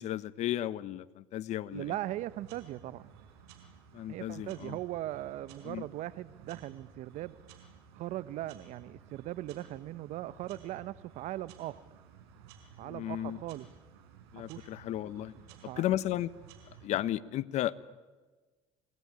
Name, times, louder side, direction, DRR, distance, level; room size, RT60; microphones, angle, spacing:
voice 1, 0.0-1.9 3.9-4.8 5.6-5.8 12.8-13.4 14.3-15.3 15.8-16.3 16.8-17.7, left 13 dB, 60° left, 17 dB, 1.1 m, -34 dB
voice 2, 1.7-3.1 4.1-7.4 7.9-11.8 12.8-13.7 14.3-14.7 15.6-15.9, right 15 dB, 65° right, 17 dB, 1.1 m, -39 dB
sound 1, 1.7-16.9, right 7 dB, 85° right, 4.9 m, -55 dB
28.5 x 20.0 x 9.8 m, 1.3 s
supercardioid pair, 80°, 13 cm